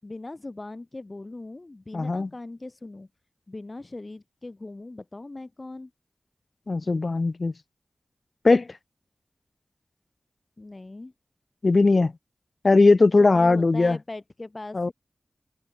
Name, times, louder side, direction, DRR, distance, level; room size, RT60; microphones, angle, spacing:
voice 1, 0.0-3.1 3.5-5.9 10.6-11.1 13.2-14.9, left 2 dB, 40° left, 7.0 m, -40 dB
voice 2, 1.9-2.3 6.7-7.5 8.4-8.7 11.6-12.1 12.6-14.0 14.7-14.9, left 3 dB, 55° left, 0.7 m, -19 dB
open air
cardioid pair, 50°, 0 cm